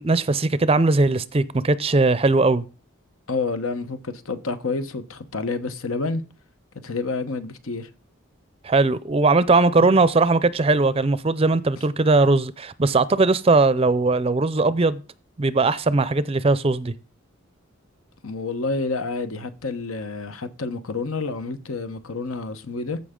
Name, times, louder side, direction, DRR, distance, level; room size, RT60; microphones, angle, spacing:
voice 1, 0.0-2.6 8.6-15.0 15.4-16.9, right 3 dB, 25° right, 0.5 m, -19 dB
voice 2, 3.3-6.2 6.8-7.9 9.8-9.9 18.2-23.0, left 3 dB, 80° left, 1.1 m, -29 dB
14.5 x 5.5 x 3.7 m
head